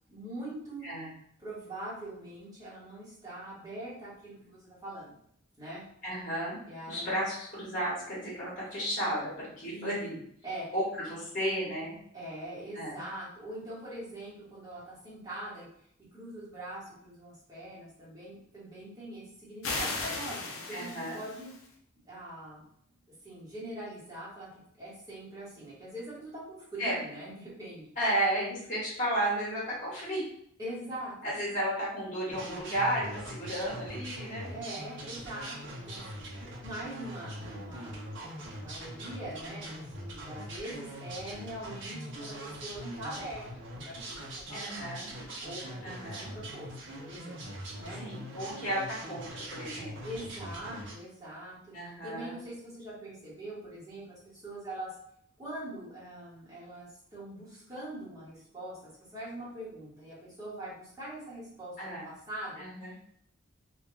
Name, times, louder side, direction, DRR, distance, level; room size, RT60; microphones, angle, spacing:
voice 1, 0.1-0.9 1.4-5.2 5.6-5.8 6.7-7.1 9.7-10.2 10.4-10.7 12.1-15.7 16.1-21.5 22.0-22.6 23.2-24.5 24.7-27.9 30.6-31.3 33.6-33.8 34.5-36.2 36.6-38.2 38.6-45.0 45.4-46.7 47.0-47.4 47.8-48.0 50.0-51.7 52.0-54.9 55.4-58.8 59.1-62.6, right 1 dB, 15° right, -9 dB, 1.1 m, -43 dB
voice 2, 6.0-6.6 6.9-10.2 10.7-12.0 12.7-13.0 20.7-21.2 26.8-26.9 28.0-30.2 31.2-34.5 44.5-45.1 45.8-46.3 48.0-49.9 51.7-52.4 61.8-62.1 62.6-62.9, right 1 dB, 35° left, -7 dB, 1.1 m, -33 dB
sound 1, 19.6-21.7, left 3 dB, 80° left, 0.5 m, -36 dB
sound 2, 32.3-50.9, right 1 dB, 55° right, 0.6 m, -42 dB
2.2 x 2.2 x 3.0 m, 0.68 s
head